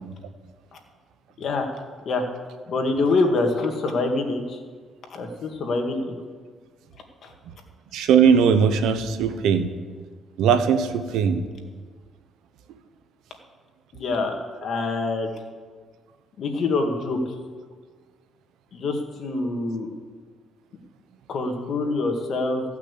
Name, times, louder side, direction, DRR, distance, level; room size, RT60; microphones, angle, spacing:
voice 1, 1.4-1.7 2.1-2.2 2.7-4.6 5.1-6.1 7.2-7.3 13.9-15.3 16.4-17.2 18.7-19.9 21.3-22.6, left 3 dB, 60° left, 3 dB, 2.1 m, -25 dB
voice 2, 7.9-9.7 10.4-11.4, right 7 dB, 85° right, 9 dB, 0.9 m, -19 dB
15.5 x 6.0 x 8.4 m, 1.5 s
cardioid pair, 95°, 0 cm